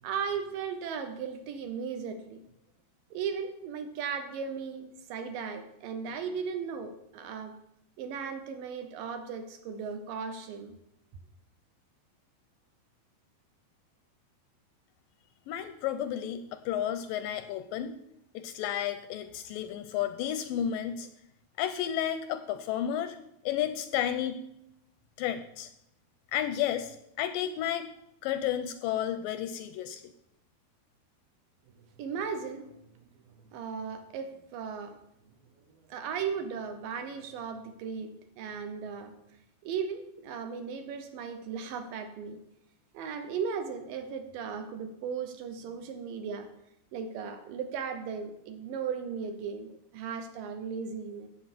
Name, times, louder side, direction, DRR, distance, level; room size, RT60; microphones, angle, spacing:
voice 1, 0.0-2.4 3.1-7.6 8.0-10.8 32.0-33.1 33.5-35.0 35.8-39.2 39.6-42.4 42.9-46.5 46.9-51.3, right 6 dB, 75° right, 8 dB, 2.4 m, -36 dB
voice 2, 15.5-17.9 18.3-21.1 21.6-23.2 23.4-24.4 25.2-25.7 26.3-27.9 28.2-30.0, left 10 dB, 80° left, 10 dB, 2.1 m, -32 dB
8.0 x 7.7 x 6.8 m, 0.80 s
omnidirectional pair, 4.3 m